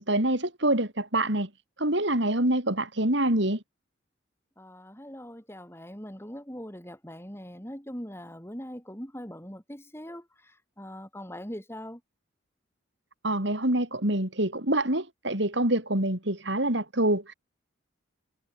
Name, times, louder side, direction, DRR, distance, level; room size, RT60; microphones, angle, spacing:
voice 1, 0.0-1.5 1.8-3.6 13.2-17.3, right 1 dB, 60° right, 4.4 m, -26 dB
voice 2, 4.6-10.3 10.8-12.0, equal, 10° left, 6.2 m, -41 dB
head